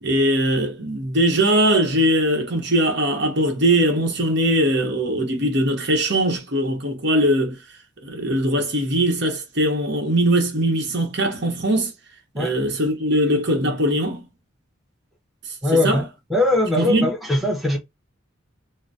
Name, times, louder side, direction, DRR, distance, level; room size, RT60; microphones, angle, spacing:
voice 1, 0.0-7.6 8.0-11.9 12.4-14.2 15.7-16.0 16.8-17.1, right 1 dB, 60° right, 1.0 m, -21 dB
voice 2, 15.6-16.0 16.3-17.8, left 2 dB, ahead, 0.8 m, -20 dB
3.8 x 2.1 x 2.6 m
head